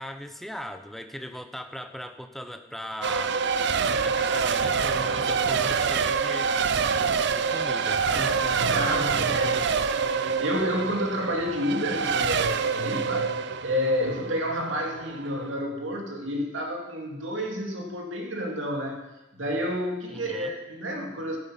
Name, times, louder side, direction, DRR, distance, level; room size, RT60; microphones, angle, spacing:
voice 1, 0.0-3.4 3.8-7.0 7.3-8.6 9.0-9.2 20.1-20.5, equal, ahead, 7 dB, 0.7 m, -39 dB
Race car auto racing / Accelerating revving vroom / Mechanisms, 3.0-15.5, right 5 dB, 65° right, 0.6 m, -26 dB
voice 2, 8.6-9.8 10.1-13.3 13.6-19.0 19.3-21.4, equal, 85° right, 1 dB, 2.4 m, -30 dB
12.5 x 8.7 x 5.8 m, 1.0 s
head